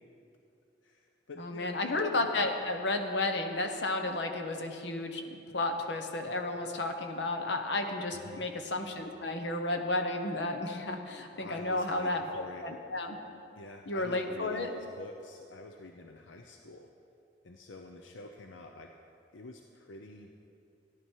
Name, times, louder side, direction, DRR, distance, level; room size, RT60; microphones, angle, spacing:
voice 1, 0.8-1.8 8.2-8.5 11.4-12.6 13.6-16.9 17.4-18.9 19.3-20.3, left 2 dB, 85° left, 3 dB, 0.7 m, -47 dB
voice 2, 1.4-13.2 13.9-14.7, left 2 dB, 65° left, 4 dB, 1.1 m, -32 dB
14.5 x 11.0 x 4.6 m, 2.7 s
head